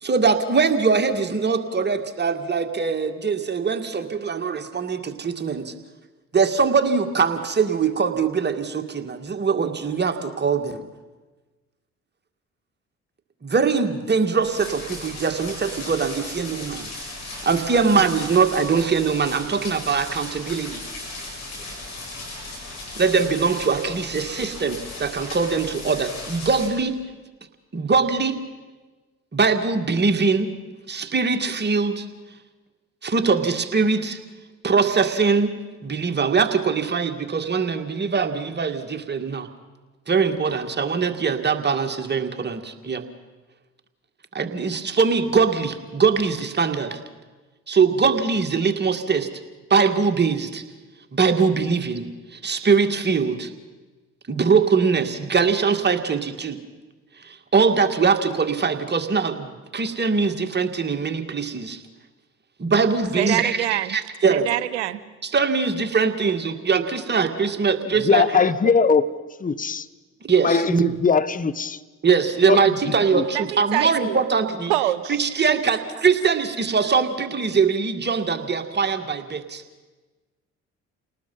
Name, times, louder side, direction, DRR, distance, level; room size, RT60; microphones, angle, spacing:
voice 1, 0.0-5.7 6.3-10.9 13.4-16.9 17.5-20.8 23.0-27.0 27.7-28.4 29.3-30.5 30.9-32.1 33.0-34.2 34.6-39.5 40.1-43.1 44.3-47.0 47.7-49.3 49.7-50.6 51.1-53.5 54.3-56.6 57.2-61.8 62.6-64.5 65.2-68.4 70.2-70.9 72.0-74.7 75.1-79.6, right 5 dB, 30° right, 2.0 m, -22 dB
sound 1, 14.4-26.7, left 2 dB, 50° left, 8.0 m, -36 dB
voice 2, 63.2-64.0 64.3-65.0 73.3-74.2 74.7-75.2 75.5-75.6, right 14 dB, 80° right, 0.9 m, -25 dB
voice 3, 67.8-69.1 69.4-69.9 70.4-71.8 72.5-72.7 73.1-73.2, left 5 dB, 25° left, 0.9 m, -20 dB
29.0 x 19.0 x 5.6 m
hypercardioid pair, 50°, 34 cm